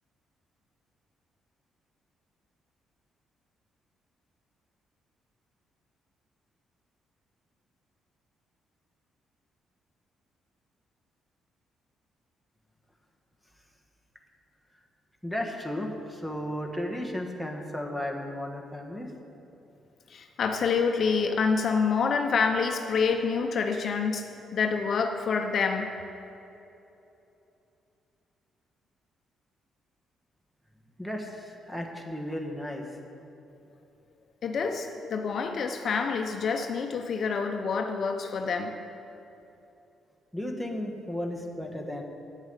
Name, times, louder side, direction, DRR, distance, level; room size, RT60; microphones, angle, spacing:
voice 1, 15.2-19.1 31.0-32.8 40.3-42.0, left 1 dB, ahead, 2 dB, 1.3 m, -34 dB
voice 2, 20.1-24.3 24.5-25.9 34.4-38.8, left 5 dB, 55° left, 5 dB, 0.7 m, -27 dB
8.3 x 8.0 x 6.7 m, 2.9 s
cardioid pair, 90°, 0 cm